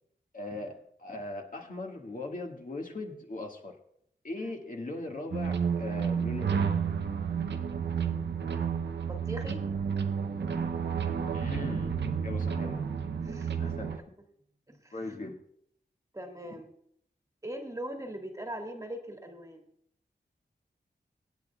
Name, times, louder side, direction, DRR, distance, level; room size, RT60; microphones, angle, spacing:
voice 1, 0.3-3.8 4.2-6.7 11.3-11.9 12.2-12.9 13.6-14.0 14.9-15.4, left 2 dB, 50° left, 1 dB, 1.7 m, -39 dB
sound 1, 5.3-14.0, right 6 dB, 80° right, 0.7 m, -31 dB
voice 2, 9.1-9.6 13.2-13.6 14.7-15.0 16.1-16.7 17.4-19.7, right 1 dB, 20° right, 3 dB, 1.6 m, -40 dB
24.0 x 8.9 x 2.3 m, 0.69 s
wide cardioid pair, 85°, 18 cm